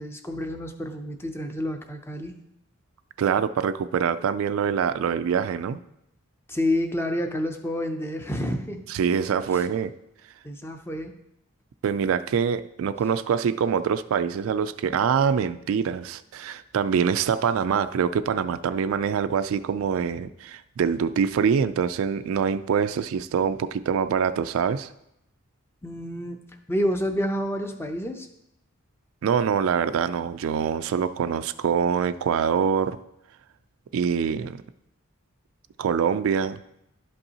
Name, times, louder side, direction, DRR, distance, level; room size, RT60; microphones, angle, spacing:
voice 1, 0.0-2.3 6.5-8.8 9.5-9.6 10.4-11.1 25.8-28.3, left 1 dB, 10° left, 6 dB, 0.5 m, -29 dB
voice 2, 3.2-5.8 8.9-9.9 11.8-24.9 29.2-33.0 33.9-34.6 35.8-36.6, right 7 dB, 65° right, 12 dB, 0.3 m, -24 dB
11.5 x 5.3 x 2.8 m, 0.81 s
head